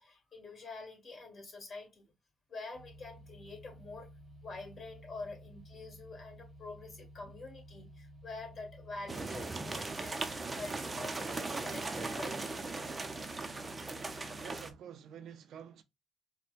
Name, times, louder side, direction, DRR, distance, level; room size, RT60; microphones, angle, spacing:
voice 1, 0.0-2.1 2.5-4.1 4.4-12.7, left 3 dB, 40° left, 1.9 m, -46 dB
sound 1, 2.7-14.7, equal, 10° left, 1.9 m, -54 dB
sound 2, 9.1-14.7, right 3 dB, 25° right, 0.5 m, -38 dB
voice 2, 14.4-15.8, right 9 dB, 75° right, 0.5 m, -49 dB
4.4 x 2.2 x 2.5 m
cardioid pair, 90°, 0 cm